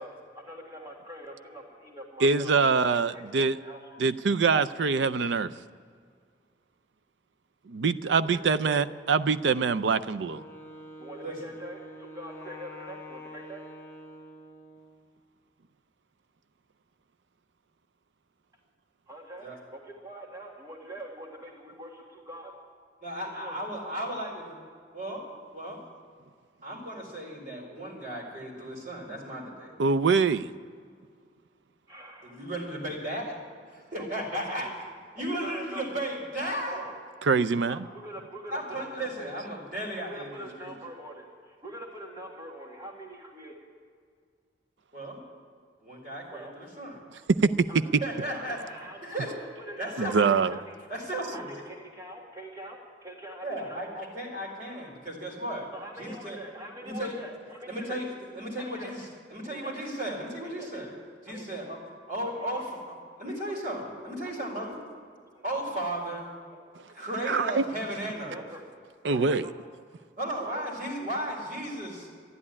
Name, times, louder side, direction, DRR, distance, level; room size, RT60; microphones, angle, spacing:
voice 1, 0.0-4.0 8.0-8.8 11.0-13.6 19.1-22.5 23.3-23.6 31.9-32.5 34.0-34.7 35.2-35.9 36.7-37.0 37.7-39.6 40.0-43.6 46.3-46.5 47.7-50.8 51.3-53.9 55.7-58.0 58.6-58.9 59.4-59.7 60.4-60.7 61.3-61.6 62.3-62.7 63.2-63.5 64.4-64.7 65.3-65.6 68.3-68.6 69.1-69.6 70.4-70.7 71.0-71.1, right 1 dB, 20° right, 1.7 m, -44 dB
voice 2, 2.2-3.6 4.0-5.5 7.7-10.4 29.8-30.5 37.3-37.8 47.4-47.7 50.0-50.6 67.3-67.6 69.0-69.4, right 4 dB, 85° right, 0.5 m, -24 dB
Wind instrument woodwind instrument, 10.2-15.1, equal, 10° left, 1.6 m, -46 dB
voice 3, 23.0-24.6 24.9-25.2 25.5-25.8 26.6-29.7 32.2-33.4 33.7-34.7 35.2-36.8 38.5-40.7 44.9-45.2 45.8-47.0 48.0-48.6 49.0-49.3 49.8-50.4 50.9-51.6 53.4-55.7 56.0-56.4 56.8-57.2 57.7-61.0 61.2-61.8 62.1-62.8 63.2-64.8 65.4-66.3 66.9-68.4 70.2-72.1, right 1 dB, 45° right, 4.1 m, -35 dB
13.0 x 11.0 x 9.8 m
head